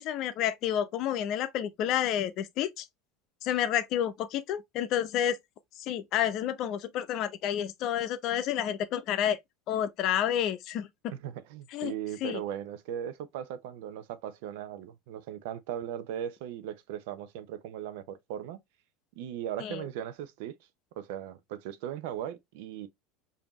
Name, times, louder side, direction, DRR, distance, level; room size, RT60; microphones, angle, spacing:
voice 1, 0.0-2.9 3.4-5.4 5.8-9.4 9.7-11.1 11.7-11.9 12.2-12.4 19.6-19.9, left 10 dB, 55° left, 0.6 m, -30 dB
voice 2, 11.1-18.6 19.2-20.6 21.0-22.9, right 10 dB, 70° right, 0.6 m, -38 dB
5.1 x 2.7 x 3.0 m
hypercardioid pair, 90°, 0 cm